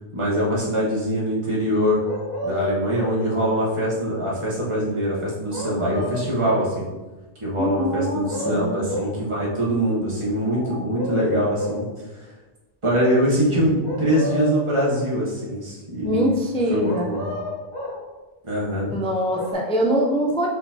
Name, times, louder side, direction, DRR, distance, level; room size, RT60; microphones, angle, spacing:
voice 1, 0.1-2.0 2.4-6.8 7.4-11.8 12.8-16.3 16.7-17.3 18.5-18.9, equal, 25° right, -6 dB, 1.2 m, -23 dB
sound 1, 2.0-3.2 5.5-6.7 8.0-9.2 10.4-11.9 13.8-15.0 16.8-18.0 19.1-19.5, left 1 dB, 55° left, 1.3 m, -30 dB
voice 2, 7.6-8.7 16.0-17.1 18.9-20.5, equal, 10° left, -2 dB, 0.3 m, -23 dB
4.2 x 4.0 x 2.8 m, 1.1 s
omnidirectional pair, 1.2 m